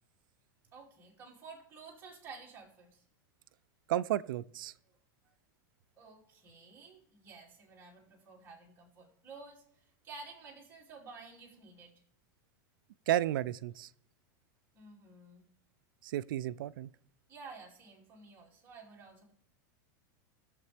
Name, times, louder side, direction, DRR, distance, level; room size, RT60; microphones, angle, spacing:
voice 1, 0.7-3.0 5.2-5.3 6.0-11.9 14.7-15.4 17.3-19.3, right 4 dB, 20° right, -3 dB, 2.6 m, -52 dB
voice 2, 3.9-4.7 13.1-13.9 16.0-16.9, right 13 dB, 90° right, 17 dB, 0.4 m, -32 dB
18.5 x 7.3 x 3.4 m, 0.71 s
supercardioid pair, 160°, 11 cm